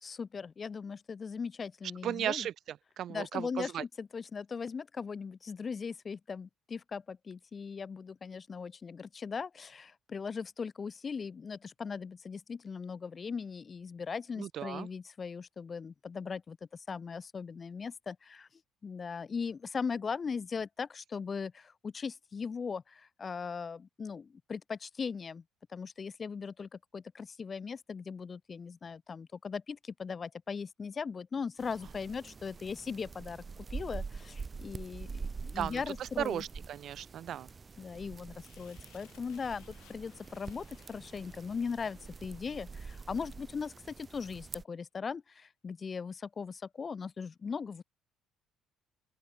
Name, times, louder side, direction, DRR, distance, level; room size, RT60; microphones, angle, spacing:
voice 1, 0.0-2.5 3.1-18.5 18.8-25.4 25.7-36.4 37.8-47.8, left 5 dB, 30° left, 0.6 m, -39 dB
voice 2, 2.0-2.5 3.0-3.8 14.4-14.9 35.6-35.8 36.2-37.5, right 10 dB, 50° right, 0.7 m, -36 dB
sound 1, 31.6-44.6, right 4 dB, 25° right, 1.1 m, -45 dB
Fire, 35.1-44.3, left 18 dB, 85° left, 4.5 m, -66 dB
open air
cardioid pair, 135°, 0 cm